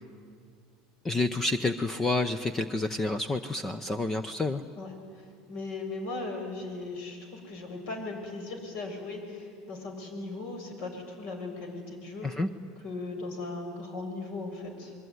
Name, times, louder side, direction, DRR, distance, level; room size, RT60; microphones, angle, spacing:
voice 1, 1.0-4.6 12.2-12.5, left 2 dB, 15° left, 11 dB, 0.7 m, -29 dB
voice 2, 5.5-12.3 12.8-14.9, left 3 dB, 55° left, 4 dB, 6.3 m, -38 dB
27.5 x 22.5 x 9.6 m, 2.1 s
supercardioid pair, 145°, 2 cm